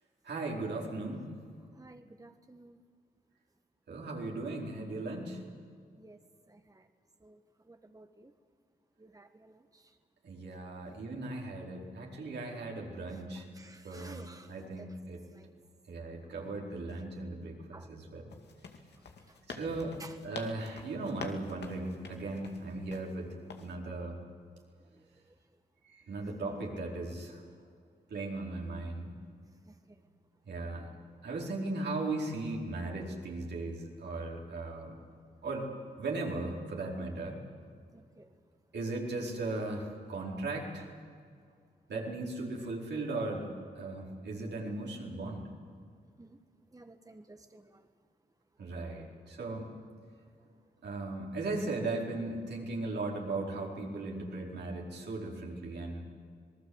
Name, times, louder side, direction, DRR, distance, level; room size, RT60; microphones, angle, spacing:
voice 1, 0.2-1.3 3.9-5.4 10.2-13.5 13.8-15.2 15.9-18.2 19.5-24.2 25.8-27.4 28.1-29.2 30.4-30.9 31.2-35.0 35.4-35.7 36.0-37.4 38.7-40.9 41.9-45.5 48.6-49.7 50.8-56.0, right 2 dB, 80° right, -1 dB, 4.6 m, -37 dB
voice 2, 1.7-2.8 6.0-6.2 6.5-6.9 7.2-7.4 7.6-8.3 9.0-9.9 13.1-14.9 15.3-15.5 16.2-16.3 17.7-17.9 19.3-19.4 19.6-19.7 20.0-20.2 24.9-25.0 26.4-26.5 29.7-30.0 37.9-38.3 46.2-46.4 46.7-47.9, right 2 dB, 20° right, 7 dB, 1.5 m, -54 dB
sound 1, 18.3-23.1 23.5-23.7, left 5 dB, 75° left, 2.3 m, -47 dB
26.5 x 19.5 x 8.0 m, 2.2 s
cardioid pair, 55°, 18 cm